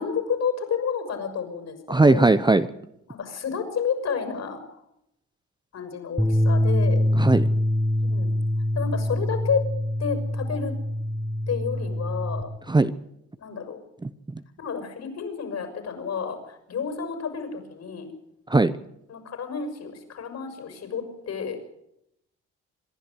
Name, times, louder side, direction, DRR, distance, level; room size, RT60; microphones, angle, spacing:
voice 1, 0.0-2.4 3.1-4.6 5.7-7.0 8.0-8.3 8.7-9.6 10.0-10.7 11.5-12.5 13.4-13.8 14.6-18.1 19.1-21.6, left 6 dB, 60° left, 7 dB, 6.2 m, -30 dB
voice 2, 1.9-2.7 7.2-7.4 12.7-12.9 14.0-14.1 18.5-18.7, right 2 dB, 15° right, 13 dB, 0.8 m, -18 dB
sound 1, 6.2-12.4, left 1 dB, ahead, 2.0 m, -24 dB
26.0 x 11.5 x 9.6 m, 0.79 s
cardioid pair, 90°, 30 cm